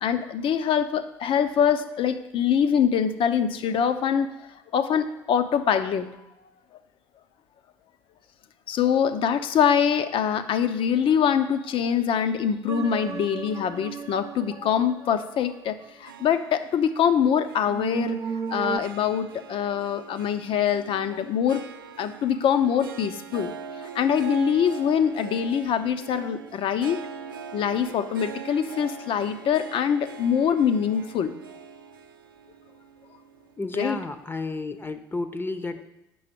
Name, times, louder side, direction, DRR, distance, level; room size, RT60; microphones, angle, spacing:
voice 1, 0.0-6.1 8.7-18.2 18.5-21.7 22.0-23.5 23.9-27.1 27.5-31.3 33.7-34.0, left 8 dB, 55° left, 10 dB, 0.7 m, -24 dB
sound 1, 12.7-16.0 17.6-18.8, right 6 dB, 30° right, 0.5 m, -34 dB
Harp, 16.0-34.5, right 6 dB, 90° right, 0.4 m, -42 dB
voice 2, 33.6-35.8, left 2 dB, 20° left, 10 dB, 0.7 m, -31 dB
7.7 x 5.7 x 5.2 m, 0.89 s
hypercardioid pair, 60°, 11 cm